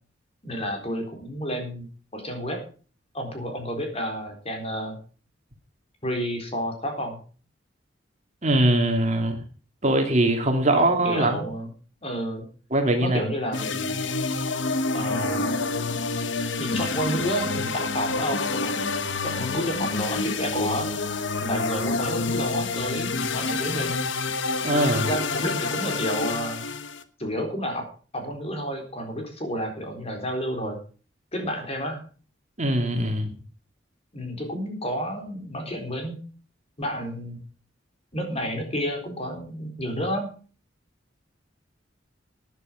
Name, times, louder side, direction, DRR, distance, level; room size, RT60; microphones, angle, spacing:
voice 1, 0.4-1.9 2.1-2.6 3.1-5.0 6.0-7.2 10.7-11.7 12.0-12.5 13.0-14.0 14.9-15.6 16.6-20.9 21.4-24.1 25.1-26.6 27.2-27.9 28.1-30.8 31.3-32.0 34.1-36.2 36.8-37.4 38.1-40.3, equal, 35° left, 3 dB, 4.0 m, -30 dB
voice 2, 8.4-9.4 9.8-11.5 12.7-13.3 24.6-25.1 32.6-33.4, right 1 dB, 40° right, 4 dB, 2.5 m, -22 dB
sound 1, 13.5-27.0, left 3 dB, 75° left, 1.1 m, -28 dB
13.5 x 10.5 x 5.1 m, 0.38 s
head